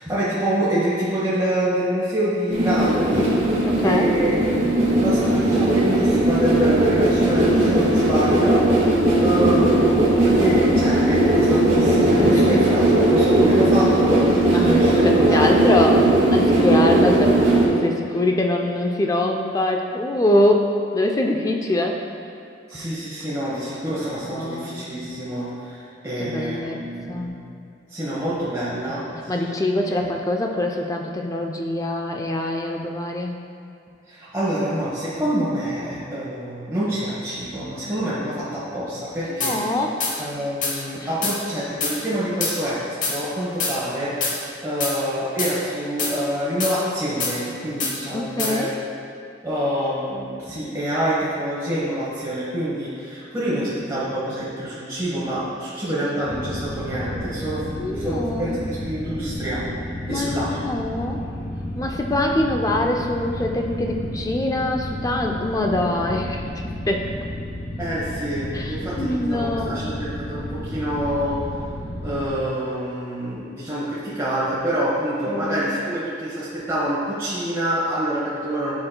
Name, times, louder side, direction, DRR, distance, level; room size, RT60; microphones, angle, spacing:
voice 1, 0.0-3.3 3.8-8.6 9.2-16.0 22.7-27.4 27.9-29.3 29.9-30.1 34.1-39.6 40.2-44.1 44.6-48.7 49.4-59.6 60.1-60.6 67.8-71.4 72.0-78.7, right 1 dB, 15° right, -10 dB, 1.0 m, -26 dB
sound 1, 2.5-17.7, right 1 dB, 40° right, 1.4 m, -18 dB
voice 2, 3.7-4.2 9.0-9.4 14.5-20.6 20.9-22.0 23.9-24.8 26.2-27.3 29.3-33.4 39.4-40.1 48.1-48.7 56.2-56.3 57.8-58.6 60.1-61.2 61.8-67.1 68.5-70.0 75.3-75.7, left 1 dB, 20° left, 2 dB, 0.4 m, -24 dB
sound 2, 39.4-39.5 40.0-40.1 40.6-40.7 41.2-41.4 41.8-41.9 42.4-42.5 43.0-43.1 43.6-43.7 44.2-44.4 44.8-44.9 45.4-45.5 46.0-46.1 46.6-46.7 47.2-47.3 47.8-47.9 48.4-48.5, left 4 dB, 45° left, 0.9 m, -24 dB
sound 3, 56.3-72.3, left 1 dB, 80° left, 1.0 m, -32 dB
7.8 x 5.6 x 2.2 m, 2.6 s
head